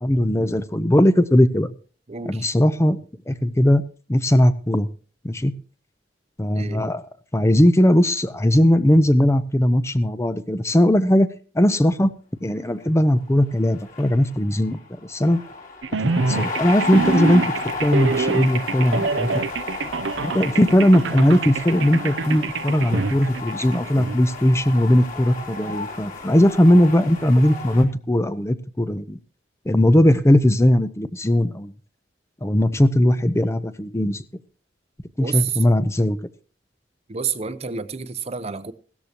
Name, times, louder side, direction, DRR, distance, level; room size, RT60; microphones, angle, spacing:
voice 1, 0.0-1.7 2.3-3.8 4.1-4.9 5.2-5.5 6.4-7.0 7.3-11.3 11.5-12.1 12.4-15.4 16.0-17.4 17.8-19.3 20.2-29.2 29.7-31.7 32.4-34.2 35.2-36.2, left 1 dB, 15° left, 0.6 m, -18 dB
voice 2, 2.1-2.5 6.5-6.8 35.2-35.6 37.1-38.7, right 6 dB, 35° right, 0.7 m, -29 dB
sound 1, 13.2-13.3 13.5-27.8, left 3 dB, 45° left, 3.2 m, -33 dB
sound 2, 15.8-24.2, right 4 dB, 90° right, 0.6 m, -26 dB
16.5 x 13.5 x 2.9 m
head